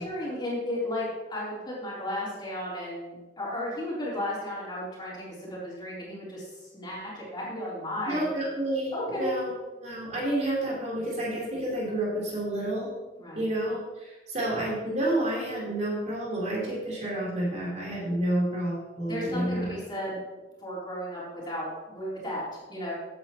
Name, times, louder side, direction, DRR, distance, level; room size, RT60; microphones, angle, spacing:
voice 1, 0.0-8.2 8.9-9.4 13.2-13.4 19.1-20.2 20.6-22.9, left 1 dB, 25° left, -7 dB, 3.9 m, -34 dB
voice 2, 8.1-9.5 9.8-12.9 13.4-19.7, right 1 dB, 40° right, -5 dB, 3.9 m, -29 dB
14.5 x 8.8 x 3.1 m, 1.2 s
head